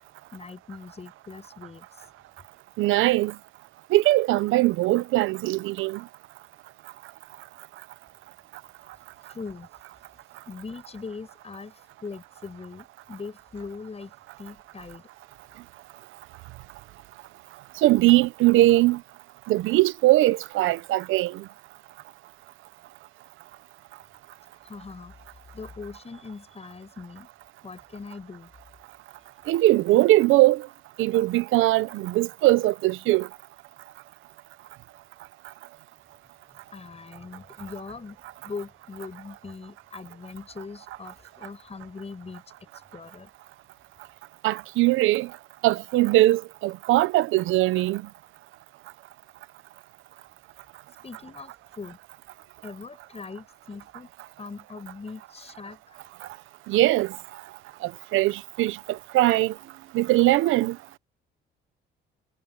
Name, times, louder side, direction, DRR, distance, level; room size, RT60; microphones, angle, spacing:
voice 1, 0.3-2.1 8.7-8.9 9.3-9.8 10.5-15.0 24.5-27.3 27.6-28.5 29.2-29.3 36.7-43.3 51.0-52.0 52.6-54.1 54.4-56.0 56.2-56.3, left 4 dB, 30° left, 7.7 m, -41 dB
voice 2, 2.8-3.3 3.9-6.0 17.8-19.0 19.5-21.4 29.5-30.7 31.0-33.3 44.4-45.3 45.6-48.0 56.7-57.2 57.8-59.5 59.9-60.8, right 17 dB, 90° right, 0.8 m, -21 dB
cardioid pair, 90°, 20 cm